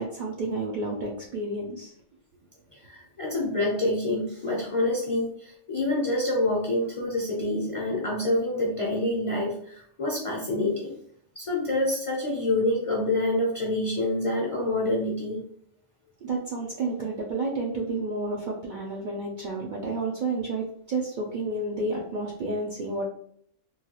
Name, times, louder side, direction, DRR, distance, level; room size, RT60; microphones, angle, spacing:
voice 1, 0.0-1.9 16.2-23.1, right 2 dB, 60° right, -1 dB, 0.5 m, -30 dB
voice 2, 2.7-11.0 11.4-15.4, left 1 dB, 40° left, -3 dB, 0.5 m, -27 dB
3.1 x 2.2 x 2.9 m, 0.66 s
omnidirectional pair, 1.2 m